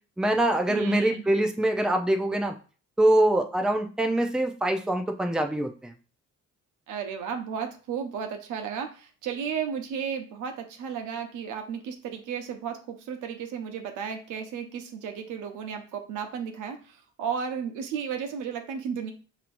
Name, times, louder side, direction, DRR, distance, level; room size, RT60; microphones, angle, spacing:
voice 1, 0.2-2.5 3.0-5.9, right 1 dB, ahead, 5 dB, 0.5 m, -24 dB
voice 2, 0.7-1.2 6.9-19.1, right 7 dB, 85° right, 5 dB, 0.8 m, -34 dB
5.5 x 3.0 x 2.6 m, 0.37 s
cardioid pair, 90°, 30 cm